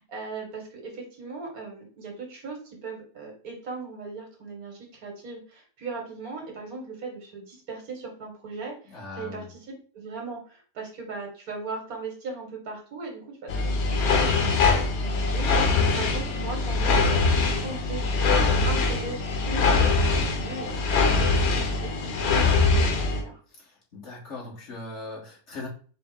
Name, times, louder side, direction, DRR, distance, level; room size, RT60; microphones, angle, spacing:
voice 1, 0.0-15.7 16.0-21.3 21.5-23.4, right 3 dB, 80° right, 1 dB, 1.7 m, -39 dB
voice 2, 8.9-9.4 23.7-25.7, left 3 dB, 50° left, -5 dB, 1.5 m, -39 dB
sound 1, 13.5-23.2, left 3 dB, 85° left, 1.3 m, -23 dB
5.2 x 2.1 x 3.5 m, 0.41 s
omnidirectional pair, 1.5 m